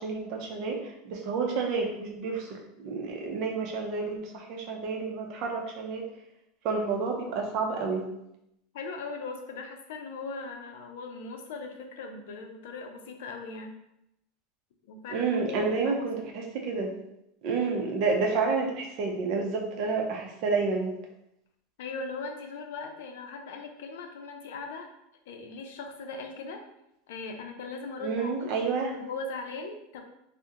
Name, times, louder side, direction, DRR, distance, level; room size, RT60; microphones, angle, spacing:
voice 1, 0.0-6.1 6.6-8.1 15.1-16.9 17.4-20.9 28.0-28.9, right 4 dB, 45° right, 1 dB, 0.6 m, -30 dB
voice 2, 8.7-13.8 14.9-16.1 21.8-24.9 25.3-26.6 27.1-28.5 28.9-30.0, left 3 dB, 80° left, 4 dB, 0.5 m, -39 dB
2.8 x 2.1 x 3.6 m, 0.82 s
supercardioid pair, 160°, 0 cm